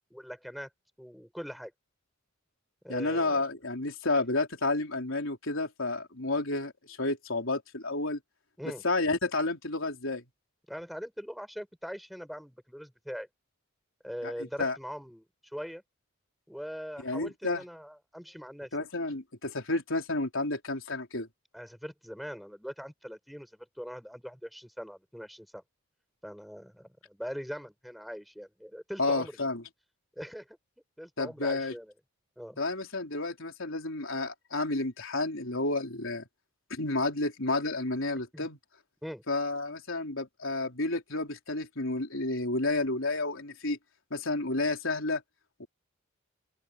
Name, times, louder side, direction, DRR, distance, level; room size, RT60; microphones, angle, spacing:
voice 1, 0.1-0.7 1.0-1.7 2.8-3.4 8.6-8.8 10.7-13.3 14.0-15.8 16.5-18.7 21.5-25.6 26.2-29.4 30.2-30.6 31.0-31.9 32.4-32.6 38.3-38.5 39.0-39.2, equal, ahead, 5.2 m, -41 dB
voice 2, 2.9-8.2 8.8-10.2 14.2-14.3 14.6-14.8 17.0-17.6 18.7-21.3 29.0-29.6 31.2-31.7 32.6-36.2 36.7-38.6 39.3-43.8 44.1-45.2 45.6-45.7, left 2 dB, 65° left, 3.9 m, -31 dB
open air
head